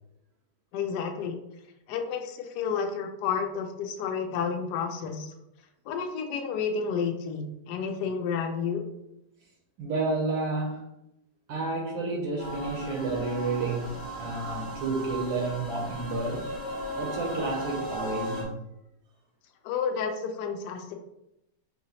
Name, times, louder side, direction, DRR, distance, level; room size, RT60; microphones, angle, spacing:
voice 1, 0.7-1.4 1.9-5.3 5.9-8.8 19.6-20.9, left 6 dB, 75° left, 4 dB, 1.0 m, -31 dB
voice 2, 9.8-10.8 11.5-16.5 16.9-18.5, right 3 dB, 75° right, -1 dB, 1.5 m, -30 dB
sound 1, 12.4-18.4, equal, 20° left, 0.8 m, -36 dB
4.7 x 2.9 x 2.8 m, 0.85 s
omnidirectional pair, 2.3 m